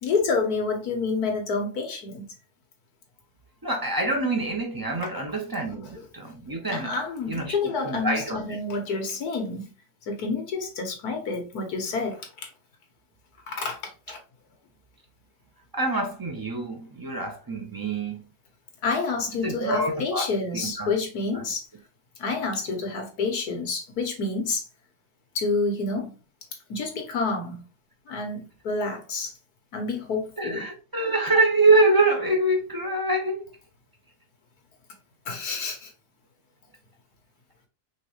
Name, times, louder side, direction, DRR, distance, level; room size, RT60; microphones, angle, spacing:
voice 1, 0.0-2.3 6.0-6.1 6.7-9.7 10.1-12.3 13.5-13.8 14.1-14.2 18.8-21.6 22.2-24.6 25.4-26.2 26.7-27.7 28.1-29.3 29.7-30.7 35.3-35.9, left 4 dB, 70° left, 1.7 m, -28 dB
voice 2, 3.6-6.9 7.3-8.6 15.7-18.2 19.4-20.9 21.3-21.4 22.7-22.8 30.4-33.5, right 2 dB, 25° right, 0.4 m, -25 dB
5.2 x 3.2 x 3.0 m
omnidirectional pair, 1.7 m